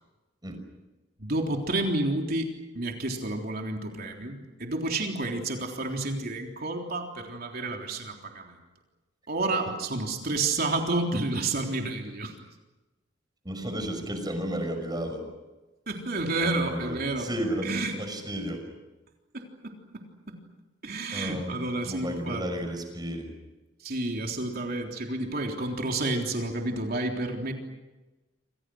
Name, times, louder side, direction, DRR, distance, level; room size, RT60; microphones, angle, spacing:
voice 1, 1.2-8.6 9.3-12.4 15.9-17.3 17.6-18.0 19.3-20.4 20.8-22.5 23.8-27.5, right 2 dB, 50° right, 2 dB, 3.7 m, -30 dB
voice 2, 13.4-15.3 16.4-18.6 21.1-21.6 21.8-23.3, right 1 dB, 20° right, 6 dB, 6.0 m, -33 dB
28.5 x 27.0 x 6.4 m, 1.1 s
head